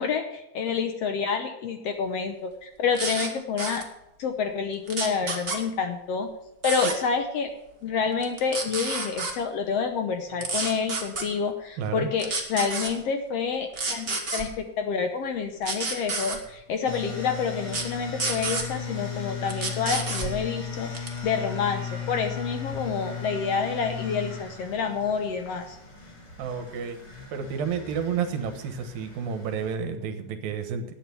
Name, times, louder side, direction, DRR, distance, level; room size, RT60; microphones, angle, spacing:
voice 1, 0.0-3.8 4.2-6.3 6.6-7.5 7.8-25.8, left 6 dB, 75° left, 6 dB, 1.4 m, -28 dB
sound 1, 2.9-3.3 3.6-3.8 4.9-5.6 6.6-6.9 8.2-9.3 10.4-11.2 12.2-12.9 13.7-14.4 15.6-16.4 17.7-17.8 18.2-18.6 19.5-20.3 20.9-21.2, right 3 dB, 25° right, 1.3 m, -29 dB
voice 2, 11.8-12.1 26.4-27.0 27.3-30.9, right 6 dB, 80° right, 7 dB, 3.0 m, -30 dB
sound 2, 16.8-29.7, left 6 dB, 40° left, 3.5 m, -37 dB
11.5 x 8.8 x 7.0 m, 0.88 s
omnidirectional pair, 4.1 m